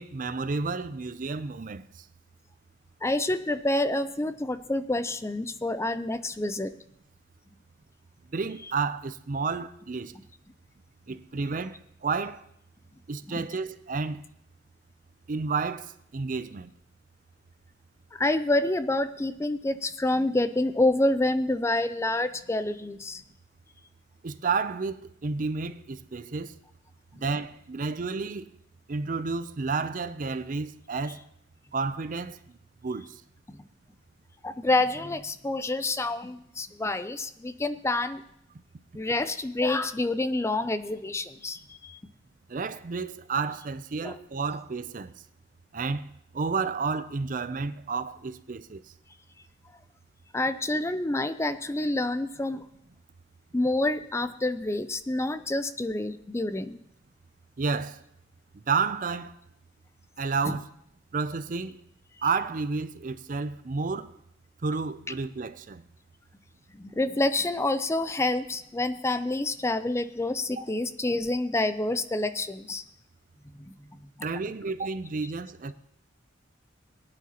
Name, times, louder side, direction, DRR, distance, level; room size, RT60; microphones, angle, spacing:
voice 1, 0.0-1.9 8.3-10.1 11.1-12.4 13.1-14.2 15.3-16.7 24.2-26.5 27.2-28.5 28.9-31.2 31.7-32.4 32.8-33.1 42.5-45.1 45.7-46.1 46.3-48.8 57.6-58.0 58.7-59.3 60.2-60.7 61.1-61.8 62.2-64.1 64.6-65.8 74.2-75.7, right 4 dB, 45° right, 0.5 m, -31 dB
voice 2, 3.0-6.7 13.3-13.4 18.1-23.2 33.5-33.6 34.4-38.2 38.9-42.0 43.9-44.2 50.3-52.6 53.5-56.8 60.5-60.6 66.7-72.8 73.6-74.0 75.2-75.3, left 2 dB, 15° left, 0.4 m, -28 dB
19.0 x 10.0 x 2.9 m
head